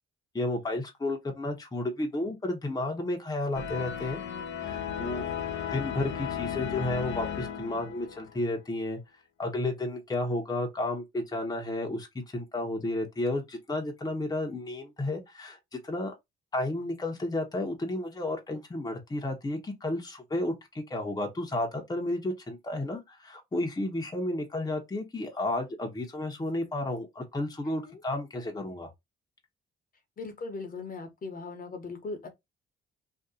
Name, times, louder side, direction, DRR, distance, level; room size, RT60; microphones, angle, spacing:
voice 1, 0.3-4.2 4.6-5.2 5.7-9.0 9.4-16.1 16.5-28.9, left 2 dB, 20° left, 1.0 m, -32 dB
sound 1, 3.5-8.4, left 8 dB, 65° left, 0.7 m, -35 dB
voice 2, 30.2-32.3, left 3 dB, 45° left, 1.1 m, -39 dB
2.8 x 2.5 x 3.6 m
cardioid pair, 90°, 20 cm